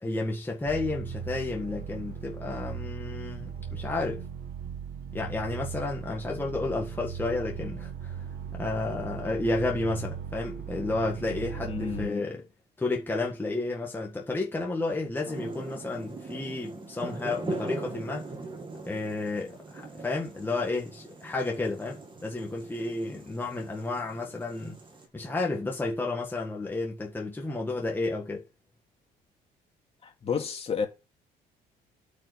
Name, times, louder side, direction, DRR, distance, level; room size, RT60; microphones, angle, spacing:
voice 1, 0.0-4.2 5.1-8.2 8.5-12.4 12.8-18.2 18.9-24.8 25.1-28.4, left 2 dB, 10° left, 1.7 m, -31 dB
sound 1, 0.6-12.1, right 7 dB, 60° right, 1.5 m, -38 dB
voice 2, 11.6-12.3 23.1-23.2 30.0-30.9, left 6 dB, 35° left, 2.4 m, -32 dB
sound 2, 15.2-25.1, right 3 dB, 30° right, 2.2 m, -41 dB
8.6 x 5.4 x 6.4 m
cardioid pair, 110°, 17 cm